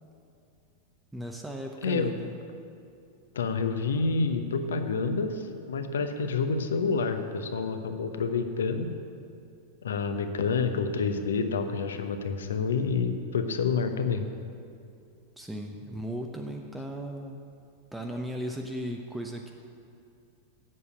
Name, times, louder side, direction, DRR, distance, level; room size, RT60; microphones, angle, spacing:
voice 1, 1.1-2.3 15.4-17.4 17.9-19.5, equal, 5° right, 2 dB, 0.7 m, -36 dB
voice 2, 1.8-2.1 3.3-8.9 9.8-14.2, left 4 dB, 65° left, 8 dB, 0.9 m, -28 dB
8.1 x 7.6 x 8.9 m, 2.5 s
figure-of-eight pair, 90°, 0 cm